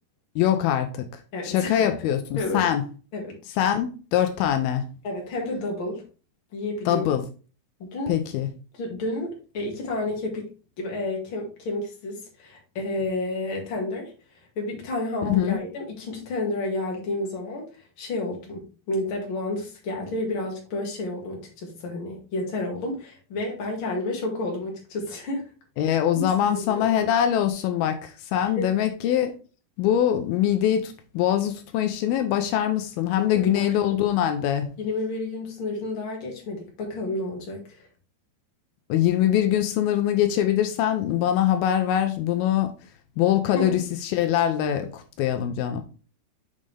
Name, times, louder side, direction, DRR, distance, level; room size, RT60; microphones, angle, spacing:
voice 1, 0.4-1.1 1.4-2.8 3.6-4.9 6.9-7.3 8.1-8.5 15.3-15.6 25.8-29.4 29.8-34.8 38.9-42.7 43.2-45.8, left 10 dB, 85° left, 2.5 m, -23 dB
voice 2, 1.3-1.9 2.4-2.7 3.1-3.4 5.0-6.0 6.5-7.1 7.8-8.2 8.7-10.5 10.8-14.1 14.6-17.7 18.0-25.5 26.2-27.0 28.6-28.7 33.2-33.7 34.8-37.9 43.5-43.8, left 2 dB, 40° left, 2.3 m, -30 dB
6.6 x 5.4 x 3.4 m
omnidirectional pair, 4.4 m